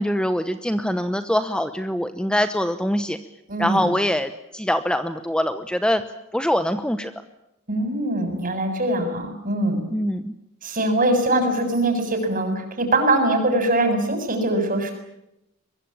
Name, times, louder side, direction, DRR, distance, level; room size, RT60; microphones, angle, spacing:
voice 1, 0.0-3.2 3.6-6.0 6.3-7.1 9.9-10.3, equal, 5° left, 10 dB, 0.9 m, -23 dB
voice 2, 3.5-3.9 7.7-9.8 10.6-14.9, right 1 dB, 40° right, 6 dB, 7.3 m, -22 dB
23.5 x 23.0 x 8.8 m, 0.86 s
head